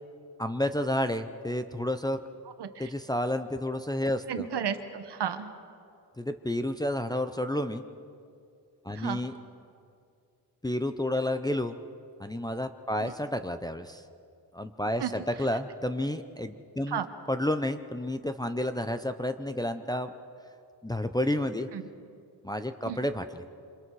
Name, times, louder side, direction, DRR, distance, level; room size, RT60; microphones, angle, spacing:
voice 1, 0.4-2.2 2.8-4.5 6.2-7.8 8.8-9.3 10.6-11.8 12.2-14.0 14.5-17.0 17.3-20.2 20.8-21.7 22.4-23.4, left 1 dB, 10° left, 7 dB, 0.6 m, -30 dB
voice 2, 2.6-2.9 4.3-5.5 8.9-9.2 13.0-13.1 15.0-15.1 16.9-17.1 21.7-21.9 22.8-23.0, right 8 dB, 70° right, 9 dB, 1.4 m, -33 dB
27.5 x 26.5 x 4.8 m, 2.4 s
wide cardioid pair, 145°, 43 cm